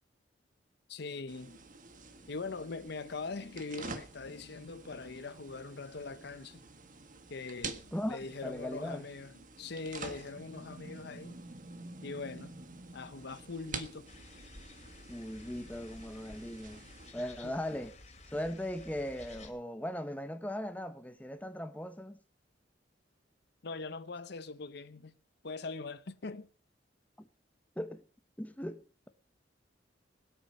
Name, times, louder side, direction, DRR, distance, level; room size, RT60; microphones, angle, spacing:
voice 1, 0.9-1.6 2.3-6.6 7.3-11.4 12.0-12.5 12.9-14.1 17.2-17.6 23.6-25.2 25.4-26.5, left 4 dB, 65° left, 0.8 m, -42 dB
sound 1, 1.3-17.1, right 3 dB, 45° right, 1.5 m, -48 dB
voice 2, 7.9-9.1 15.1-16.9 17.1-17.9 18.3-22.2 27.2-27.3 27.8-28.0 28.4-29.1, left 1 dB, 10° left, 1.1 m, -38 dB
sound 2, 14.1-19.5, left 2 dB, 40° left, 2.8 m, -53 dB
20.5 x 8.7 x 5.4 m
head